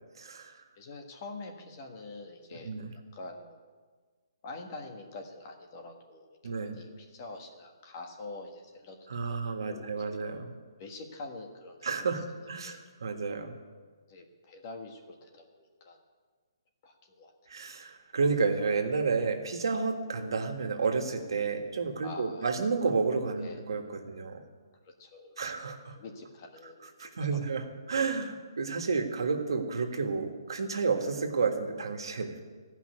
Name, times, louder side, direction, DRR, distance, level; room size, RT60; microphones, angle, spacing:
voice 1, 0.2-0.6 2.6-2.9 6.4-6.8 9.1-10.5 11.8-13.5 17.5-24.4 25.4-25.9 27.0-32.4, right 4 dB, 75° right, 3 dB, 1.7 m, -31 dB
voice 2, 0.8-3.6 4.4-9.0 9.3-9.4 9.6-9.9 10.8-12.1 12.6-12.8 14.1-16.0 16.8-17.3 22.0-22.5 23.4-23.6 24.8-25.5 25.9-27.5, left 3 dB, 35° left, 3 dB, 1.6 m, -45 dB
14.5 x 5.7 x 9.5 m, 1.5 s
hypercardioid pair, 160°, 2 cm